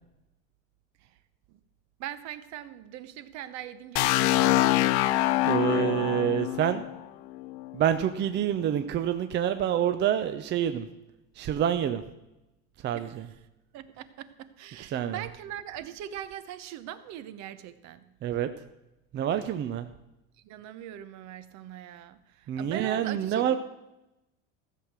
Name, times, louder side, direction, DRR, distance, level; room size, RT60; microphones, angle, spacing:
voice 1, 2.0-4.8 12.9-13.3 13.7-18.0 20.4-23.6, right 11 dB, 55° right, 13 dB, 0.9 m, -41 dB
sound 1, 4.0-7.8, left 16 dB, 80° left, 0.6 m, -25 dB
voice 2, 5.5-6.9 7.7-10.9 11.4-12.0 12.8-13.3 14.9-15.2 18.2-18.5 19.1-19.9 22.5-23.6, right 10 dB, 35° right, 9 dB, 0.6 m, -27 dB
15.0 x 6.6 x 6.1 m, 0.94 s
supercardioid pair, 125°, 33 cm